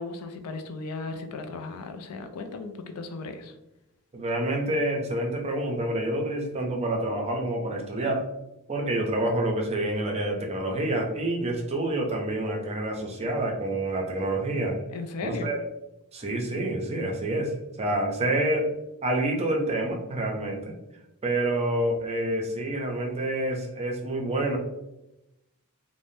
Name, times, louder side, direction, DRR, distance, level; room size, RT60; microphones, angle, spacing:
voice 1, 0.0-3.5 14.9-15.5, left 3 dB, 80° left, 7 dB, 0.4 m, -36 dB
voice 2, 4.1-8.3 8.7-14.8 15.2-15.6 16.1-18.7 19.0-20.7 21.2-24.6, right 1 dB, 30° right, 1 dB, 0.5 m, -28 dB
3.3 x 2.1 x 2.6 m, 0.89 s
head